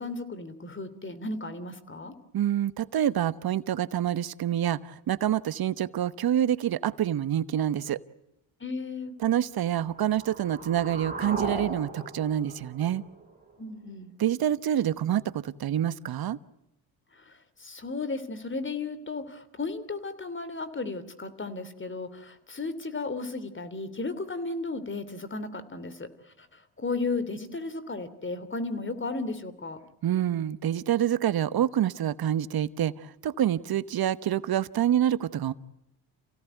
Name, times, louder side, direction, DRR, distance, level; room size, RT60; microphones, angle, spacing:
voice 1, 0.0-2.1 8.6-9.1 13.6-14.1 17.1-26.1 26.4-29.8, left 3 dB, 25° left, 13 dB, 3.1 m, -34 dB
voice 2, 2.3-8.0 9.2-13.0 14.2-16.4 30.0-35.5, right 10 dB, 50° right, 17 dB, 1.1 m, -27 dB
sound 1, 9.7-13.7, right 2 dB, 20° right, 5.2 m, -38 dB
28.5 x 17.0 x 9.1 m, 0.87 s
supercardioid pair, 65°, 46 cm